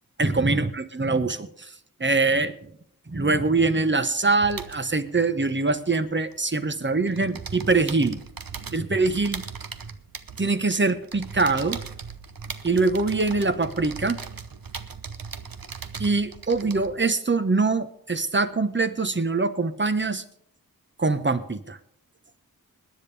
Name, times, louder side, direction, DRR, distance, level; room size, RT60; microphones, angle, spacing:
voice 1, 0.2-1.7 2.0-2.7 3.1-8.2 8.7-9.4 10.4-11.8 12.6-14.2 16.0-20.2 21.0-21.8, right 3 dB, 30° right, 11 dB, 1.2 m, -23 dB
sound 1, 4.4-6.7 6.9-17.0, right 6 dB, 70° right, 0.9 m, -39 dB
20.5 x 10.5 x 3.4 m, 0.66 s
wide cardioid pair, 45°, 36 cm